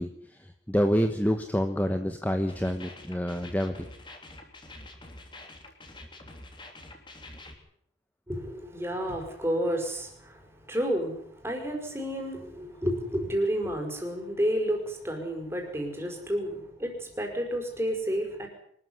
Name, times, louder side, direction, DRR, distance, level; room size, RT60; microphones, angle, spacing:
voice 1, 0.0-3.7, equal, 10° left, 7 dB, 1.2 m, -27 dB
sound 1, 2.5-7.5, left 2 dB, 25° left, 3.5 m, -47 dB
voice 2, 8.3-18.5, equal, 15° right, 2 dB, 5.4 m, -31 dB
24.5 x 14.0 x 9.8 m, 0.68 s
head